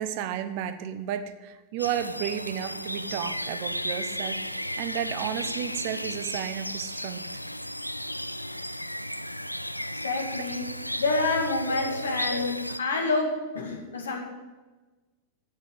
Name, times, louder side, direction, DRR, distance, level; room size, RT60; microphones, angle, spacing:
voice 1, 0.0-7.3, right 10 dB, 45° right, 11 dB, 0.9 m, -33 dB
sound 1, 1.8-12.8, equal, 90° left, 0.3 m, -34 dB
voice 2, 10.0-10.7 11.0-14.2, left 3 dB, 70° left, 2 dB, 2.3 m, -28 dB
9.9 x 9.3 x 8.1 m, 1.2 s
figure-of-eight pair, 90°, 0 cm